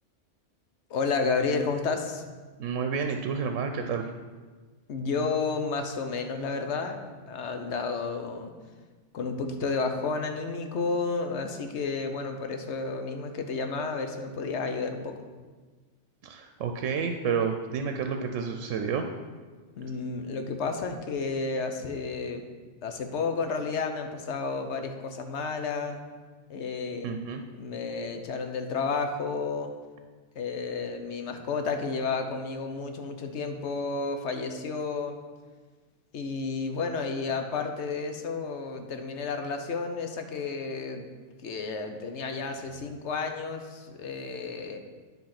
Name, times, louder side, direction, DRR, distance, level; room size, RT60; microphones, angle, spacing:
voice 1, 0.9-2.2 4.9-7.0 7.3-8.5 9.1-15.2 19.8-22.4 22.8-26.0 26.5-27.1 27.6-29.7 30.4-35.2 36.1-41.1 41.4-44.8, left 4 dB, 65° left, 6 dB, 1.1 m, -31 dB
voice 2, 2.6-4.1 16.2-19.1 27.0-27.4, right 6 dB, 90° right, 6 dB, 1.0 m, -30 dB
10.0 x 3.7 x 5.8 m, 1.4 s
omnidirectional pair, 1.3 m